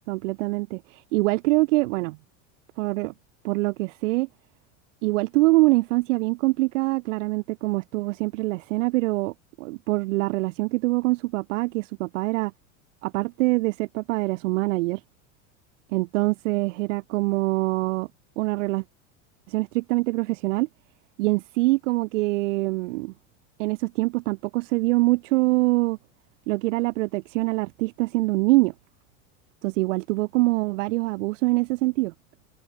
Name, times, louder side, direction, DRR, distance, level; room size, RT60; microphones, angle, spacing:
voice 1, 0.1-2.2 2.8-3.1 3.4-4.3 5.0-12.5 13.0-15.0 15.9-18.1 18.4-18.8 19.5-20.7 21.2-23.1 23.6-26.0 26.5-28.7 29.6-32.1, right 22 dB, 75° right, 3.5 m, -24 dB
open air
supercardioid pair, 130°, 38 cm